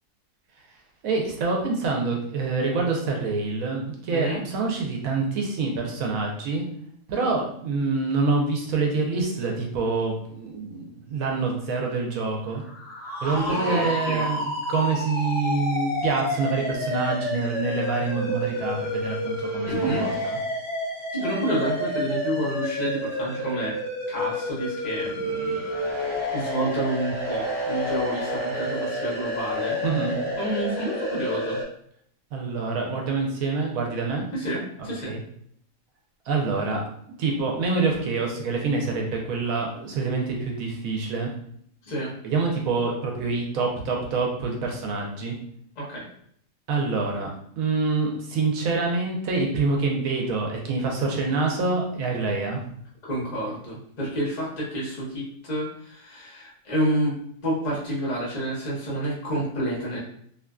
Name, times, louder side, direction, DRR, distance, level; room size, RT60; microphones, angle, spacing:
voice 1, 1.0-6.6 7.1-12.6 13.2-20.4 29.8-30.2 32.3-34.3 35.0-35.2 36.3-36.8 37.2-41.3 42.2-45.4 46.7-47.3 47.6-52.6, right 4 dB, 85° right, 0 dB, 1.0 m, -26 dB
voice 2, 4.1-4.4 13.3-14.3 19.6-20.1 21.1-23.7 24.1-25.6 26.3-29.8 30.4-31.6 34.3-35.1 41.8-42.1 45.8-46.0 53.0-60.0, right 1 dB, 35° left, -5 dB, 0.9 m, -29 dB
sound 1, 12.6-31.6, equal, 10° left, 1.0 m, -29 dB
2.6 x 2.4 x 2.2 m, 0.66 s
omnidirectional pair, 1.4 m